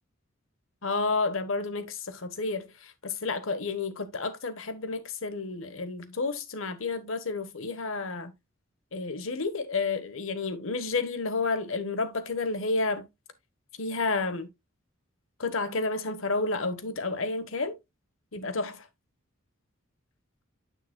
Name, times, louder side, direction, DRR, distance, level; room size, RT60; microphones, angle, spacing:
voice 1, 0.8-8.3 8.9-13.1 13.8-14.5 15.4-17.8 18.3-18.9, left 3 dB, 70° left, 1.2 m, -31 dB
9.1 x 7.0 x 2.2 m
head